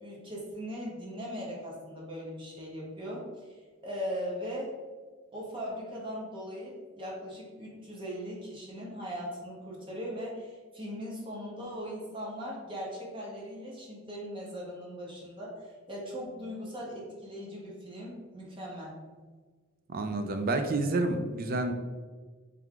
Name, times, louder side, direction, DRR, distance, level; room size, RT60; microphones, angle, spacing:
voice 1, 0.0-4.7 5.3-19.0, equal, 25° right, -4 dB, 0.9 m, -39 dB
voice 2, 19.9-21.7, right 2 dB, 45° right, 7 dB, 0.4 m, -29 dB
3.5 x 3.4 x 3.6 m, 1.4 s
head